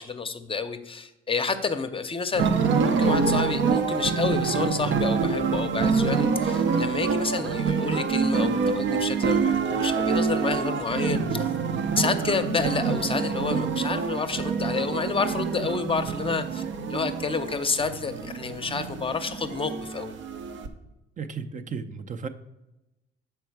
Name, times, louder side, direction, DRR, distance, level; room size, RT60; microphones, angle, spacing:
voice 1, 0.0-2.5 2.8-11.5 12.0-16.6 16.9-20.1, left 4 dB, 25° left, 9 dB, 0.6 m, -29 dB
sound 1, 2.3-20.7, right 5 dB, 75° right, 0.7 m, -26 dB
voice 2, 21.2-22.3, right 5 dB, 40° right, 9 dB, 0.5 m, -34 dB
6.2 x 4.6 x 4.6 m, 0.98 s
cardioid pair, 90°, 20 cm